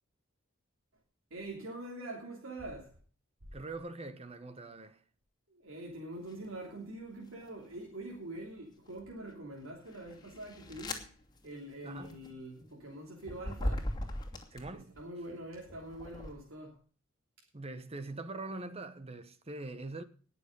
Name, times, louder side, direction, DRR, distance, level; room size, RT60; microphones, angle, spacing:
voice 1, 1.3-2.9 5.5-11.1 11.4-13.9 14.7-16.8, right 1 dB, 80° right, 3.2 m, -44 dB
voice 2, 3.5-5.0 11.8-12.2 14.5-14.9 17.5-20.0, right 2 dB, 30° right, 1.0 m, -43 dB
sound 1, 6.3-6.6 7.2-8.0 8.6-15.0 15.6-16.3, left 1 dB, 20° left, 2.6 m, -40 dB
19.5 x 6.9 x 5.3 m
head